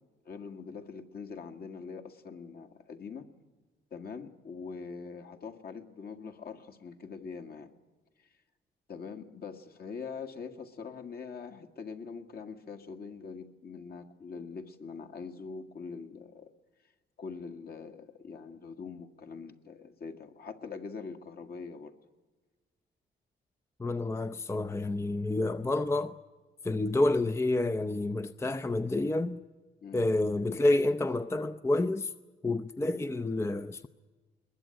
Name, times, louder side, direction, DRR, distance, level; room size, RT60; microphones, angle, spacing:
voice 1, 0.3-3.3 3.9-7.7 8.9-16.5 17.2-21.9 29.8-30.0, left 5 dB, 50° left, 2.0 m, -43 dB
voice 2, 23.8-26.1 26.6-29.4 29.9-32.1 32.4-33.9, left 2 dB, 15° left, 0.6 m, -29 dB
21.5 x 20.5 x 9.0 m
cardioid pair, 90°, 20 cm